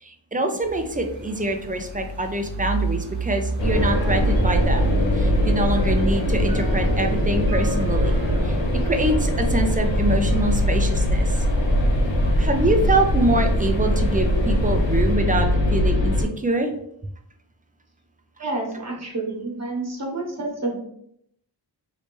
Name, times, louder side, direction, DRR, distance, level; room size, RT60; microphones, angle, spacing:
voice 1, 0.0-8.6 8.9-11.5 12.4-16.7, right 1 dB, 20° right, 4 dB, 0.5 m, -25 dB
sound 1, 0.6-15.1, right 3 dB, 85° right, 0.9 m, -34 dB
sound 2, 3.6-16.3, equal, 75° left, 0.8 m, -21 dB
Piano, 3.7-10.6, right 1 dB, 50° right, 0.8 m, -39 dB
voice 2, 18.4-20.7, right 2 dB, 35° right, -1 dB, 1.2 m, -29 dB
3.2 x 2.9 x 3.1 m, 0.71 s
wide cardioid pair, 65°, 45 cm